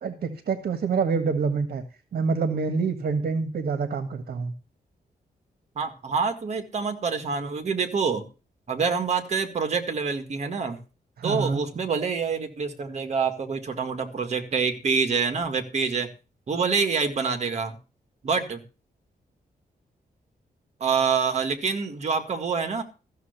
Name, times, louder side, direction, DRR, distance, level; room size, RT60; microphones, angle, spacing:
voice 1, 0.0-1.8 2.1-4.5 11.2-11.6, right 5 dB, 65° right, 8 dB, 1.6 m, -26 dB
voice 2, 5.8-8.3 8.7-10.8 11.2-16.1 16.5-17.8 18.2-18.6 20.8-22.8, right 5 dB, 45° right, 6 dB, 1.9 m, -26 dB
14.0 x 6.9 x 6.7 m, 0.34 s
wide cardioid pair, 180°, 16 cm